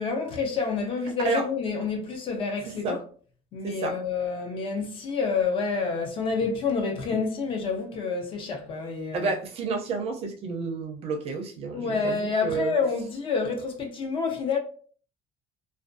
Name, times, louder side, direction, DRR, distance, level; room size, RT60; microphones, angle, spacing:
voice 1, 0.0-3.0 3.5-9.3 11.7-14.6, left 4 dB, 35° left, 0.4 m, -28 dB
voice 2, 3.6-4.0 9.1-12.8, right 4 dB, 40° right, 0.4 m, -30 dB
2.4 x 2.1 x 2.4 m
cardioid pair, 175°, 15 cm